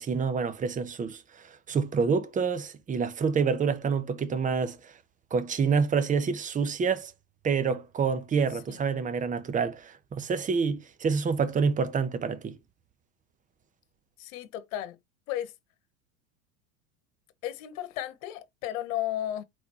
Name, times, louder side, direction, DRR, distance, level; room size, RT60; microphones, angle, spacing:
voice 1, 0.0-4.9 5.3-7.1 7.4-12.6, right 5 dB, 20° right, 0.8 m, -27 dB
voice 2, 14.2-15.0 15.3-15.5 17.4-19.4, left 12 dB, 60° left, 1.2 m, -34 dB
4.2 x 4.1 x 3.0 m
hypercardioid pair, 105°, 44 cm